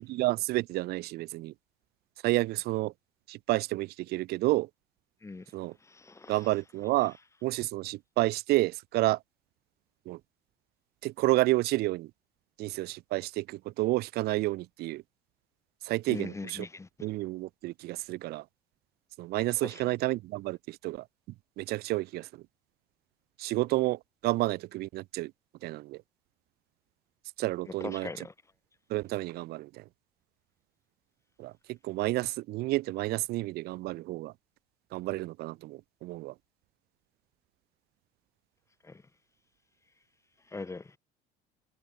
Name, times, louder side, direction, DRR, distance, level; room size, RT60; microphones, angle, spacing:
voice 1, 0.0-1.5 2.2-2.9 3.3-4.7 5.5-5.7 6.3-7.2 7.4-9.2 10.1-10.2 11.0-12.1 12.6-15.0 15.8-16.6 17.0-18.4 19.2-21.1 21.6-22.4 23.4-25.3 25.6-26.0 27.4-28.2 28.9-29.8 31.4-34.3 34.9-36.3, right 18 dB, 65° right, 1.1 m, -30 dB
voice 2, 5.8-6.7 6.9-7.3 16.1-16.9 19.6-19.9 27.7-28.3 38.8-39.0 40.5-41.0, left 3 dB, 15° left, 7.6 m, -41 dB
cardioid pair, 105°, 17 cm